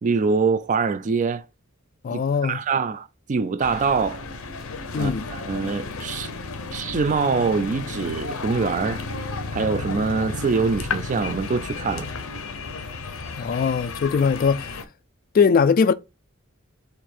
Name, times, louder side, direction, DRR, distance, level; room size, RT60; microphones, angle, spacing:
voice 1, 0.0-1.5 2.1-4.2 5.0-6.3 6.7-9.0 9.5-12.1, right 4 dB, 35° right, 0.4 m, -24 dB
voice 2, 2.0-2.6 4.9-5.3 13.4-14.7 15.3-15.9, left 5 dB, 45° left, 0.3 m, -20 dB
sound 1, 3.6-14.8, left 4 dB, 85° left, 0.7 m, -33 dB
4.2 x 2.6 x 4.2 m
head